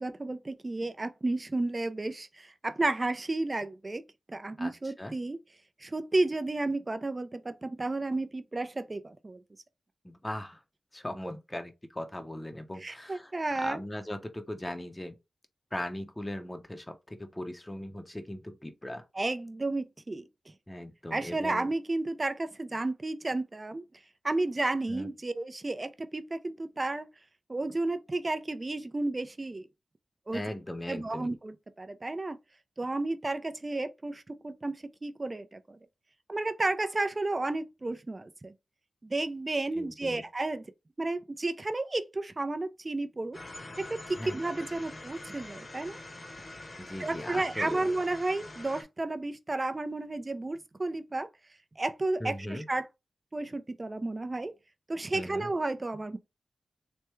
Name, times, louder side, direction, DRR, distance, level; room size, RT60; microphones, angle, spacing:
voice 1, 0.0-4.0 4.3-5.4 5.8-9.4 12.8-13.8 19.2-20.2 21.1-23.8 24.2-27.1 27.5-29.7 30.3-30.4 30.9-32.4 32.8-34.7 35.0-35.8 36.3-38.5 39.0-40.6 41.0-43.4 43.8-46.0 47.0-51.3 51.8-52.9 53.3-54.5 54.9-56.2, right 2 dB, 35° right, 0.4 m, -32 dB
voice 2, 4.6-5.1 10.0-10.6 10.9-13.3 13.6-15.1 15.7-19.1 20.7-21.7 24.9-25.1 30.3-31.3 39.7-40.2 44.2-44.7 46.8-47.9 52.2-52.7 55.1-55.5, left 1 dB, 20° left, 0.6 m, -39 dB
sound 1, 43.3-48.8, left 2 dB, 50° left, 0.8 m, -45 dB
3.4 x 2.2 x 3.0 m
cardioid pair, 45°, 0 cm